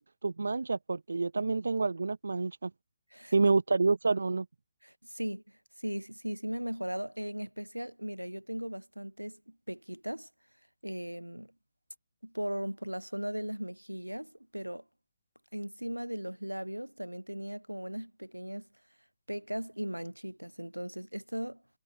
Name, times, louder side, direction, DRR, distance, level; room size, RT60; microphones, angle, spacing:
voice 1, 0.0-2.7 3.3-4.5, right 3 dB, 65° right, 0.9 m, -28 dB
voice 2, 4.8-10.3 10.8-11.5 12.2-14.8 15.5-18.7 19.3-21.6, equal, 90° right, 2.2 m, -38 dB
figure-of-eight pair, 135°, 0 cm